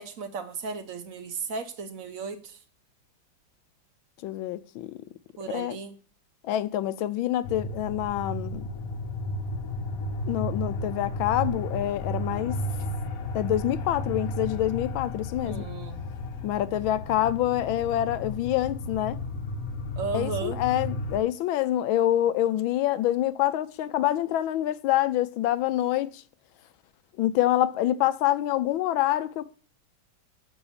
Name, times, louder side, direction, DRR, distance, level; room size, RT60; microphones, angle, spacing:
voice 1, 0.0-2.6 5.4-5.9 15.4-16.1 20.0-20.6, right 4 dB, 55° right, 1.0 m, -35 dB
voice 2, 4.2-5.0 5.5-5.8 6.4-8.7 10.3-12.6 13.3-15.6 16.4-19.2 20.1-26.2 27.2-29.5, left 13 dB, 90° left, 1.4 m, -26 dB
sound 1, 7.4-21.2, left 2 dB, 55° left, 1.0 m, -33 dB
7.0 x 6.4 x 7.1 m
omnidirectional pair, 2.2 m